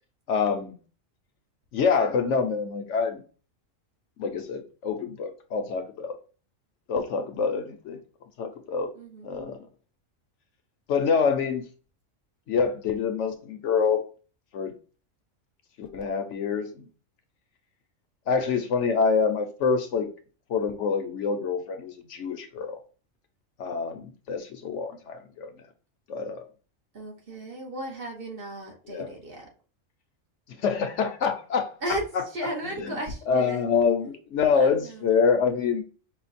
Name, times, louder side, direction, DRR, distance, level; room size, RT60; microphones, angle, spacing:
voice 1, 0.3-0.8 1.7-3.2 4.2-6.2 6.9-8.0 8.4-8.9 9.2-9.6 10.9-11.7 12.5-14.0 14.5-14.7 15.8-16.8 18.3-20.1 20.5-22.8 23.6-25.5 26.1-26.5 28.9-29.1 30.6-31.7 32.8-32.9 33.3-35.8, left 5 dB, 65° left, 1.0 m, -26 dB
voice 2, 8.9-9.3 26.9-29.5 31.8-33.7 34.5-35.1, right 1 dB, 45° right, 1.2 m, -35 dB
5.6 x 2.3 x 4.1 m
omnidirectional pair, 1.4 m